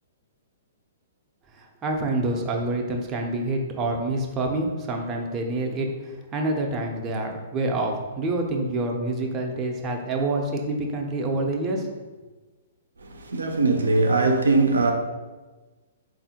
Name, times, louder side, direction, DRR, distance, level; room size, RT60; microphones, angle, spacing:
voice 1, 1.5-11.9, right 2 dB, 25° right, 0.5 m, -27 dB
voice 2, 13.0-14.9, right 3 dB, 90° right, 0.4 m, -21 dB
3.5 x 2.5 x 2.7 m
hypercardioid pair, 125°, 0 cm